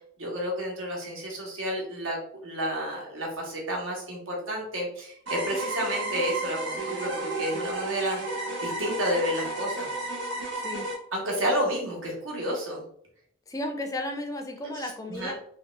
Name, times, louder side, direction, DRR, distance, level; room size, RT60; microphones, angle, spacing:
voice 1, 0.2-2.2 2.4-8.2 8.6-9.9 11.1-12.8 14.7-15.3, equal, 80° right, -1 dB, 1.2 m, -30 dB
sound 1, 5.3-10.9, right 2 dB, 60° right, 0.9 m, -32 dB
voice 2, 13.5-15.3, left 1 dB, 15° left, 5 dB, 0.4 m, -33 dB
3.5 x 2.3 x 3.1 m, 0.67 s
head